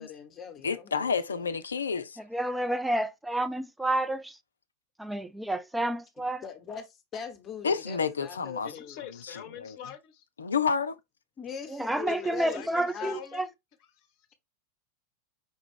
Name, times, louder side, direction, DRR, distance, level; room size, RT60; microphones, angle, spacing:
voice 1, 0.0-1.4 6.4-9.0 11.4-13.2, left 7 dB, 25° left, 1.1 m, -41 dB
voice 2, 0.6-2.2 7.6-8.7 9.3-9.8 10.4-11.0, left 5 dB, 70° left, 0.4 m, -29 dB
voice 3, 2.2-4.4 5.0-6.4 11.7-13.5, right 1 dB, 5° right, 0.4 m, -30 dB
voice 4, 8.6-10.3 12.1-13.5 13.9-14.3, left 9 dB, 40° left, 0.9 m, -44 dB
5.4 x 2.4 x 3.5 m
figure-of-eight pair, 90°, 0 cm